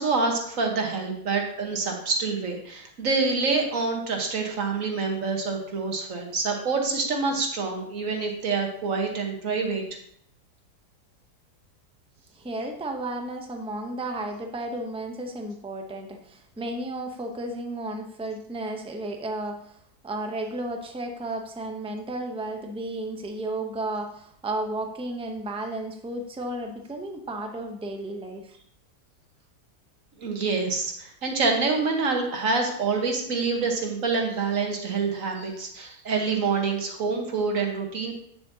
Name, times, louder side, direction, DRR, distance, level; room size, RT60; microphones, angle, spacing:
voice 1, 0.0-9.8 30.2-38.1, right 4 dB, 55° right, 2 dB, 1.6 m, -26 dB
voice 2, 12.3-19.8 20.0-28.6, right 2 dB, 10° right, 3 dB, 0.3 m, -33 dB
8.8 x 7.1 x 2.8 m, 0.68 s
omnidirectional pair, 1.7 m